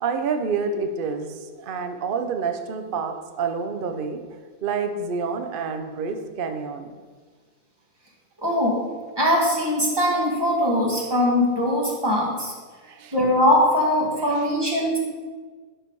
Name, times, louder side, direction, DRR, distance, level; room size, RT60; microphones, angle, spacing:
voice 1, 0.0-4.2 4.6-6.9 12.8-13.1 14.2-14.5, right 5 dB, 65° right, 6 dB, 0.5 m, -28 dB
voice 2, 8.4-8.8 9.2-12.5 13.1-15.0, left 1 dB, 15° right, -3 dB, 1.8 m, -21 dB
12.0 x 4.9 x 4.8 m, 1.5 s
omnidirectional pair, 2.0 m